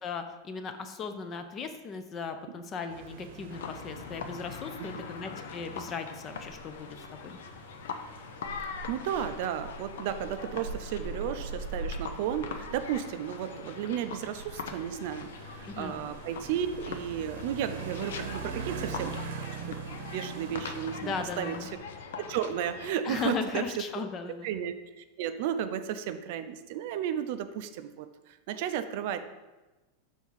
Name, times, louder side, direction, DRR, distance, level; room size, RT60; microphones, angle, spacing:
voice 1, 0.0-7.4 15.7-16.0 21.0-21.7 23.0-24.5, left 5 dB, 20° left, 8 dB, 0.4 m, -37 dB
sound 1, 2.9-21.8, right 4 dB, 65° right, 0.8 m, -42 dB
sound 2, 3.5-22.9, left 6 dB, 85° left, 0.6 m, -43 dB
voice 2, 8.9-19.1 19.5-21.6 22.3-23.6 24.4-29.2, right 9 dB, 45° right, 10 dB, 0.4 m, -34 dB
6.3 x 3.5 x 5.6 m, 1.1 s
supercardioid pair, 180°, 0 cm